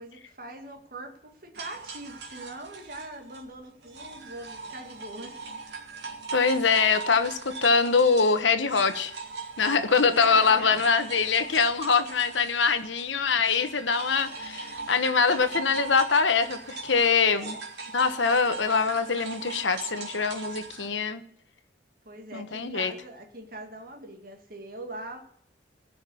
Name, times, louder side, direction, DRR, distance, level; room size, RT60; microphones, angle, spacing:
voice 1, 0.0-5.4 9.6-10.8 17.2-17.6 22.1-25.2, right 2 dB, 50° right, 3 dB, 2.1 m, -42 dB
sound 1, 1.5-13.1 13.4-20.9, right 4 dB, 70° right, 2.6 m, -40 dB
voice 2, 6.3-9.1 9.6-17.6 17.9-21.2 22.3-22.9, left 5 dB, 80° left, 9 dB, 1.2 m, -23 dB
16.5 x 6.0 x 8.5 m, 0.65 s
head